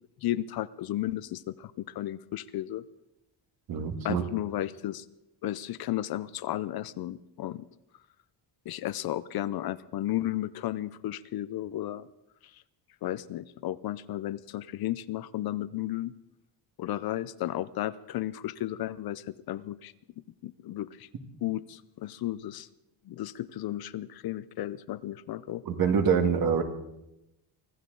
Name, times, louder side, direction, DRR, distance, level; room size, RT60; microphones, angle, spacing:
voice 1, 0.2-2.9 4.0-5.1 5.4-7.7 8.7-12.1 12.4-12.6 13.0-16.1 16.8-19.9 20.4-21.1 21.4-22.7 23.0-25.6, left 14 dB, 55° left, 16 dB, 0.6 m, -34 dB
voice 2, 3.7-4.2 25.7-26.6, right 6 dB, 55° right, 5 dB, 1.9 m, -25 dB
25.0 x 14.5 x 3.9 m, 0.88 s
cardioid pair, 150°, 43 cm